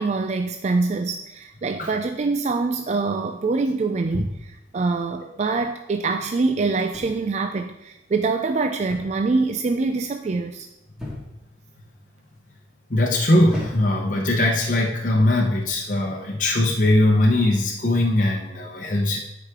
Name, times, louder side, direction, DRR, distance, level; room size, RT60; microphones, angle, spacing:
voice 1, 0.0-10.7, right 3 dB, 35° right, 6 dB, 0.3 m, -24 dB
sound 1, 6.9-7.4 8.9-9.3 9.6-10.0 11.0-11.5 12.3-12.6 13.5-14.1 15.0-15.3, left 1 dB, ahead, 1.9 m, -36 dB
voice 2, 12.9-19.2, left 1 dB, 45° left, -1 dB, 0.8 m, -20 dB
9.5 x 4.9 x 3.6 m, 0.88 s
head